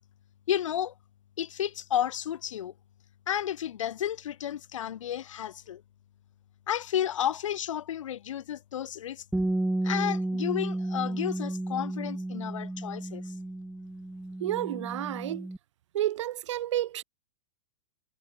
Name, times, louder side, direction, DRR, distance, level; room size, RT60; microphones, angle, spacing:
voice 1, 0.5-0.9 1.4-2.7 3.3-5.8 6.7-9.2 9.8-13.2, left 10 dB, 85° left, 2.4 m, -32 dB
Bass guitar, 9.3-15.6, right 1 dB, 5° right, 1.0 m, -32 dB
voice 2, 14.4-15.5 15.9-17.0, right 13 dB, 70° right, 1.3 m, -30 dB
supercardioid pair, 155°, 16 cm